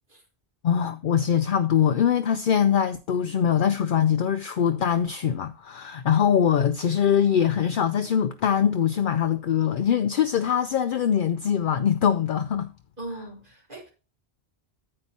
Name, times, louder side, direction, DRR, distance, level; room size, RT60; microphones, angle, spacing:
voice 1, 0.6-12.7, left 8 dB, 60° left, 0.7 m, -23 dB
voice 2, 13.0-13.9, right 2 dB, 55° right, 2.1 m, -39 dB
9.5 x 8.7 x 2.9 m
omnidirectional pair, 1.1 m